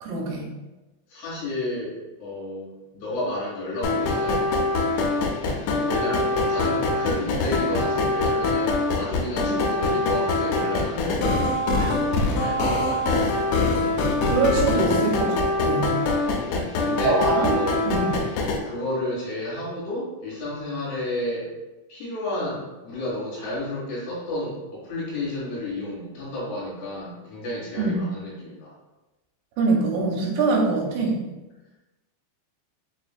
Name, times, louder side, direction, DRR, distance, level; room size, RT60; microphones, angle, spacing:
voice 1, 0.0-0.5 9.4-9.5 14.2-16.0 17.0-17.6 17.9-18.0 27.8-28.0 29.6-31.2, right 3 dB, 90° right, -1 dB, 3.0 m, -23 dB
voice 2, 1.1-1.9 2.2-4.6 5.9-13.0 16.4-17.7 18.6-21.5 21.9-28.8, left 1 dB, 70° left, -8 dB, 3.3 m, -32 dB
sound 1, 3.8-18.6, left 2 dB, 85° left, 2.9 m, -24 dB
6.8 x 2.4 x 2.2 m, 1.1 s
omnidirectional pair, 5.3 m